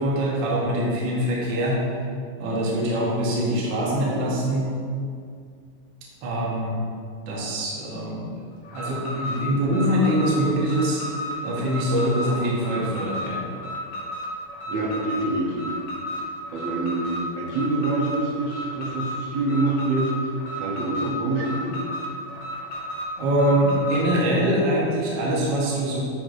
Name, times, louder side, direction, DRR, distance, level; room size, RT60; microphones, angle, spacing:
voice 1, 0.0-1.8 2.4-4.7 6.2-6.7 7.3-8.3 8.7-11.0 11.4-13.5 23.2-26.0, equal, 55° right, -5 dB, 1.4 m, -23 dB
Alarm, 8.6-24.1, equal, 60° left, 1.8 m, -33 dB
voice 2, 14.7-15.7 16.5-20.1 20.5-21.8, right 2 dB, 70° right, -4 dB, 1.9 m, -26 dB
9.1 x 4.5 x 2.6 m, 2.2 s
omnidirectional pair, 3.4 m